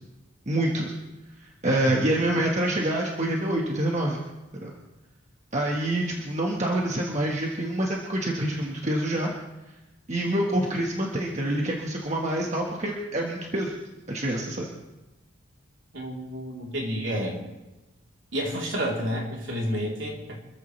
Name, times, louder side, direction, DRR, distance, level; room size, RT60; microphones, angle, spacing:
voice 1, 0.5-0.9 1.4-4.2 4.5-4.7 5.5-9.3 10.1-13.7 14.1-14.7, right 1 dB, 35° right, -1 dB, 1.6 m, -26 dB
voice 2, 1.7-2.1 15.9-17.4 18.3-20.4, equal, 65° right, -2 dB, 3.6 m, -30 dB
26.0 x 14.5 x 3.3 m, 1.0 s
head